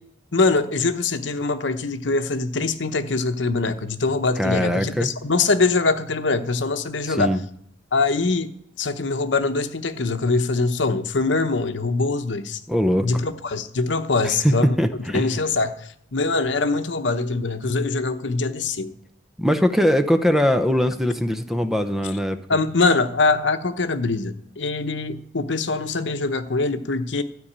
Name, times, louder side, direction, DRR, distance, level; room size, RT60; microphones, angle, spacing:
voice 1, 0.3-7.4 7.9-8.5 8.8-12.6 13.0-14.8 15.1-18.9 22.5-27.2, left 3 dB, 75° left, 9 dB, 0.9 m, -23 dB
voice 2, 4.4-5.1 7.0-7.4 12.7-13.1 14.4-14.5 14.8-15.4 19.4-22.4, equal, ahead, 8 dB, 0.7 m, -21 dB
13.0 x 5.3 x 8.7 m, 0.68 s
head